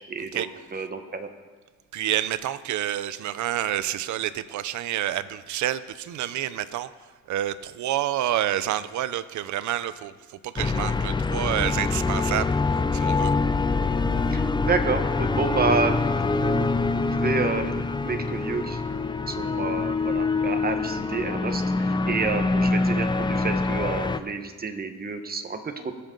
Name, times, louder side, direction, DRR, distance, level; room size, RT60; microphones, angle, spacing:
voice 1, 0.1-1.3 14.3-16.7 17.1-18.8 19.3-26.0, right 4 dB, 30° right, 7 dB, 1.3 m, -29 dB
voice 2, 1.9-6.9 7.3-12.6 12.9-13.3, right 12 dB, 70° right, 15 dB, 0.7 m, -28 dB
sound 1, 10.6-24.2, left 3 dB, 15° left, 0.5 m, -25 dB
20.5 x 7.7 x 3.9 m, 1.4 s
cardioid pair, 90°, 30 cm